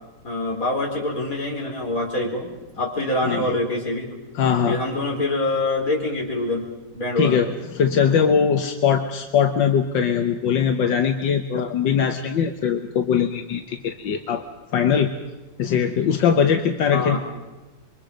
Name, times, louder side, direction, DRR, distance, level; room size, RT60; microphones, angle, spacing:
voice 1, 0.2-2.5 2.7-4.1 4.7-7.4 16.9-17.2, left 2 dB, 50° left, 0 dB, 4.7 m, -25 dB
voice 2, 3.2-3.5 4.3-4.8 7.2-14.4 14.7-15.1 15.6-17.2, left 7 dB, 80° left, 6 dB, 1.8 m, -21 dB
27.5 x 23.5 x 5.2 m, 1.2 s
omnidirectional pair, 2.0 m